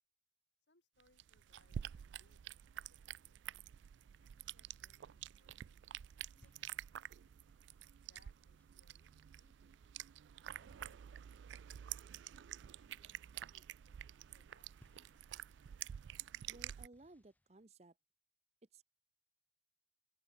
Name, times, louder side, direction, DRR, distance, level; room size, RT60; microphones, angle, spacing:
voice 1, 0.7-3.8 4.2-5.8 6.3-7.4 8.0-10.0 10.6-12.2 12.8-14.0 14.3-14.8, left 2 dB, 75° left, 7.7 m, -76 dB
sound 1, 1.0-16.9, right 10 dB, 85° right, 0.3 m, -49 dB
sound 2, 3.9-5.0 5.5-12.5 12.8-13.3 13.6-13.8 14.1-17.7, equal, 10° left, 1.6 m, -75 dB
voice 2, 16.5-17.9 18.7-18.8, right 2 dB, 35° right, 0.8 m, -59 dB
open air
head